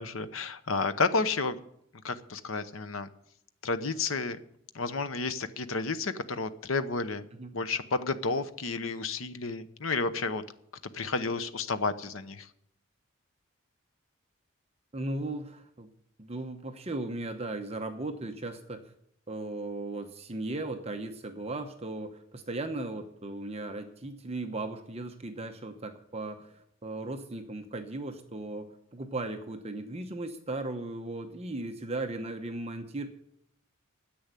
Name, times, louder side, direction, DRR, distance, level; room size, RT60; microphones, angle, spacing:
voice 1, 0.0-1.6 2.0-3.1 3.6-4.4 4.7-7.2 7.5-10.4 10.9-12.5, left 4 dB, 75° left, 11 dB, 0.9 m, -31 dB
voice 2, 14.9-15.9 16.2-18.8 19.3-33.1, right 2 dB, 30° right, 6 dB, 0.9 m, -37 dB
10.5 x 7.9 x 9.7 m, 0.72 s
head